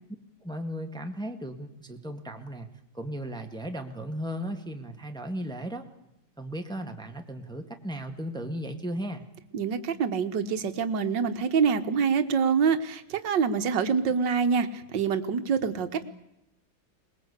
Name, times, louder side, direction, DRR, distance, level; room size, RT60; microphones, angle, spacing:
voice 1, 0.4-2.7 2.9-5.9 6.4-9.2, equal, ahead, 5 dB, 1.6 m, -36 dB
voice 2, 9.5-16.0, right 6 dB, 65° right, 9 dB, 1.9 m, -26 dB
22.5 x 20.5 x 8.2 m, 0.85 s
omnidirectional pair, 2.1 m